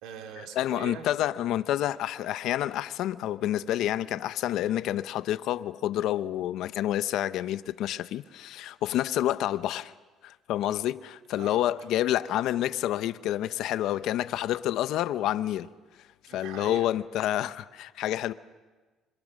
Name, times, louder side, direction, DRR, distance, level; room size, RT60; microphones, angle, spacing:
voice 1, 0.0-1.1 11.3-11.7 16.3-16.9, right 8 dB, 85° right, 2.4 m, -42 dB
voice 2, 0.6-9.9 10.2-15.7 16.3-18.3, left 12 dB, 75° left, 0.7 m, -28 dB
26.0 x 25.5 x 6.4 m
cardioid pair, 110°, 0 cm